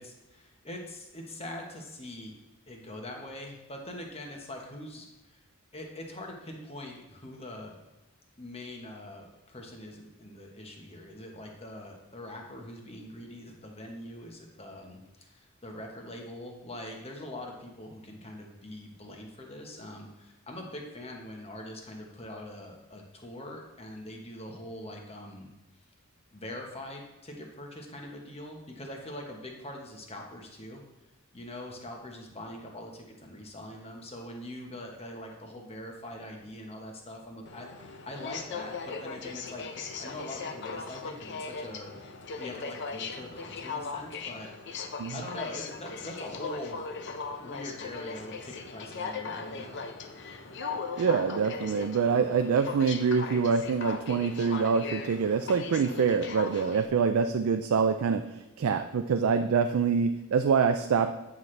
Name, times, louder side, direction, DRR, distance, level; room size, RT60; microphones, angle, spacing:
voice 1, 0.0-2.4 2.7-5.4 5.7-7.7 8.4-25.5 26.3-30.8 31.3-39.6 40.0-41.9 42.4-46.8 47.4-49.8, left 1 dB, 30° left, 1 dB, 1.2 m, -43 dB
Aircraft, 37.5-56.9, left 4 dB, 55° left, 0.6 m, -39 dB
Mallet percussion, 50.6-53.0, right 1 dB, 20° right, 1.0 m, -50 dB
voice 2, 51.0-61.1, right 6 dB, 85° right, 7 dB, 0.4 m, -25 dB
9.2 x 6.0 x 3.3 m, 1.0 s
head